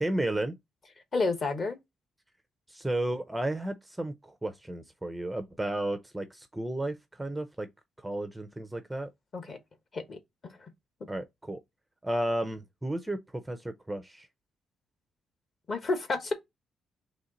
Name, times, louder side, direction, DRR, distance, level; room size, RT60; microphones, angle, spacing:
voice 1, 0.0-0.5 2.7-7.7 8.0-9.1 11.1-11.6 12.0-14.3, right 1 dB, 5° right, 0.5 m, -33 dB
voice 2, 1.1-1.8 9.3-9.6 9.9-10.2 15.7-16.3, left 3 dB, 35° left, 1.1 m, -30 dB
4.2 x 3.2 x 3.8 m
cardioid pair, 150°, 0 cm